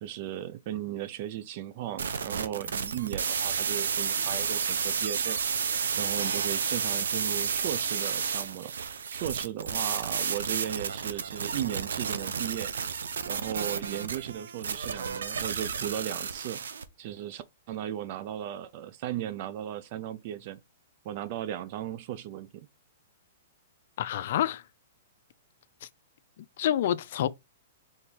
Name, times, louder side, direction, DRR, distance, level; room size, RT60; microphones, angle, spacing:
voice 1, 0.0-5.4 6.0-8.7 9.1-12.7 13.2-16.6 17.0-20.6 21.0-22.7, right 11 dB, 45° right, 0.5 m, -36 dB
sound 1, 2.0-16.8, right 6 dB, 90° right, 0.7 m, -31 dB
voice 2, 24.0-24.6 26.6-27.3, left 11 dB, 60° left, 0.5 m, -27 dB
4.4 x 3.5 x 3.3 m
hypercardioid pair, 145°, 0 cm